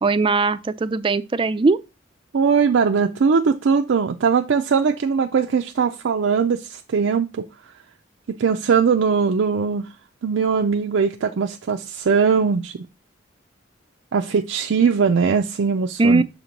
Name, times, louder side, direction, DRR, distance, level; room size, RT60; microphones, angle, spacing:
voice 1, 0.0-1.8 16.0-16.2, right 3 dB, 25° right, 0.3 m, -19 dB
voice 2, 2.3-7.4 8.3-9.9 10.2-12.7 14.1-16.2, right 5 dB, 90° right, 0.4 m, -20 dB
6.4 x 3.0 x 5.1 m
head